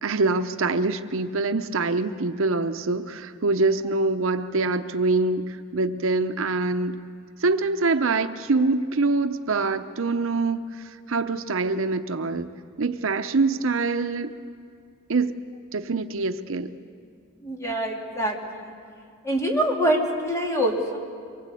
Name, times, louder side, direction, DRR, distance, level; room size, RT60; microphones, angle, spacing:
voice 1, 0.0-7.0 7.4-10.6 11.1-12.5 12.8-14.3 15.1-15.4 15.7-16.7, right 3 dB, 70° right, 9 dB, 0.8 m, -24 dB
voice 2, 17.4-18.6 19.2-21.0, right 1 dB, 15° left, 0 dB, 2.9 m, -25 dB
24.5 x 22.5 x 8.4 m, 2.2 s
head